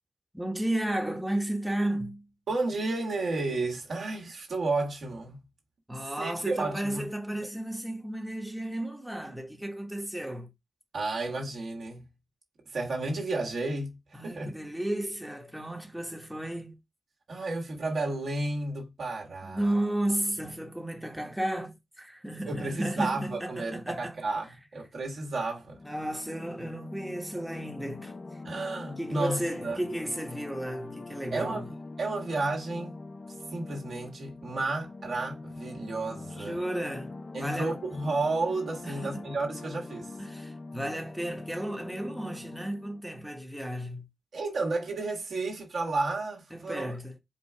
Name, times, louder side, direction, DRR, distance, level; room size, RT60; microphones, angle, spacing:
voice 1, 0.3-2.2 5.9-10.5 14.1-16.8 19.4-24.2 25.9-28.1 29.0-31.6 36.4-37.1 37.4-37.7 38.8-39.2 40.2-44.1 46.5-47.1, right 1 dB, 5° right, 1.1 m, -33 dB
voice 2, 2.5-5.4 5.9-7.1 7.4-7.5 10.9-12.1 12.6-14.5 17.3-19.7 22.4-25.8 28.4-29.8 31.3-33.0 33.5-36.6 37.3-40.2 44.3-46.9, right 3 dB, 70° right, 1.5 m, -32 dB
sound 1, 25.6-43.0, left 3 dB, 50° left, 0.6 m, -43 dB
4.7 x 2.3 x 4.5 m
supercardioid pair, 40°, 0 cm